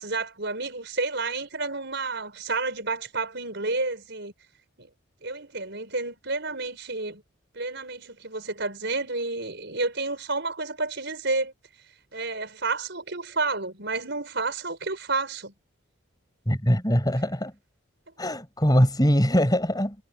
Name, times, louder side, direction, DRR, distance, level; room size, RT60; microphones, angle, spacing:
voice 1, 0.0-4.3 4.8-4.9 5.2-7.2 7.5-11.5 12.1-15.5, right 3 dB, 55° right, 5.9 m, -30 dB
voice 2, 16.4-17.5 18.2-20.0, equal, 20° left, 5.2 m, -22 dB
head